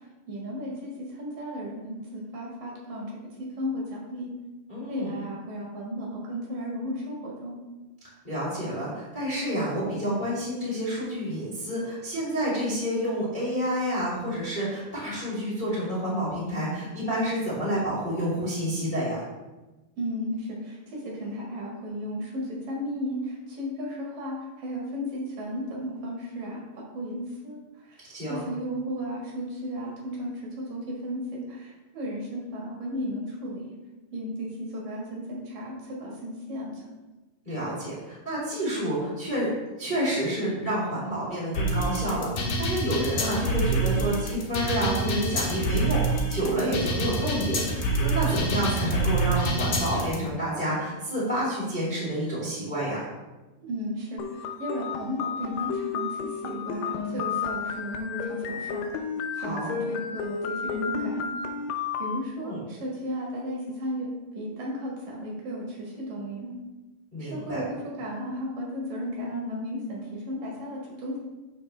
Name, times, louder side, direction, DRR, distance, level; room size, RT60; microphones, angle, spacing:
voice 1, 0.3-4.3 4.9-7.6 20.0-33.7 34.1-36.9 53.6-59.0 59.4-61.3 62.0-66.5 67.2-71.2, equal, 65° right, -3 dB, 3.0 m, -34 dB
voice 2, 4.7-5.1 8.2-19.2 28.1-28.4 37.4-39.5 39.8-53.0 59.3-59.7 62.3-62.6 67.1-67.6, equal, 15° left, -8 dB, 2.0 m, -29 dB
sound 1, 41.5-50.1, right 2 dB, 60° left, 1.7 m, -26 dB
sound 2, 54.2-62.2, left 6 dB, 80° left, 2.0 m, -32 dB
11.0 x 5.0 x 3.3 m, 1.1 s
omnidirectional pair, 4.5 m